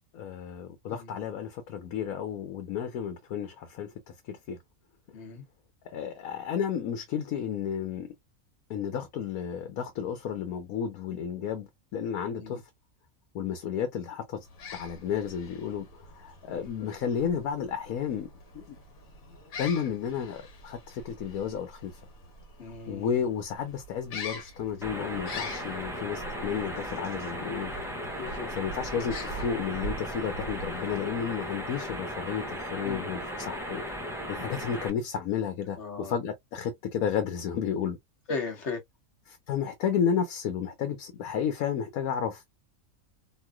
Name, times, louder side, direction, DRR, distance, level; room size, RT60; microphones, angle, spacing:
voice 1, 0.1-3.9 4.3-4.6 5.9-8.1 8.7-12.6 13.3-14.5 14.7-18.3 18.5-18.8 19.6-22.0 22.9-27.7 28.5-33.8 34.3-38.0 39.3-42.5, left 8 dB, 90° left, 1.2 m, -32 dB
voice 2, 0.9-1.2 5.1-5.4 12.3-12.6 16.5-16.7 22.6-23.2 28.2-28.8 32.8-33.1 35.8-36.2 38.3-38.8, left 4 dB, 55° left, 1.2 m, -37 dB
sound 1, 14.4-31.2, left 1 dB, 75° left, 1.5 m, -44 dB
sound 2, 24.8-34.9, equal, 5° right, 0.6 m, -36 dB
3.0 x 2.7 x 2.2 m
omnidirectional pair, 1.5 m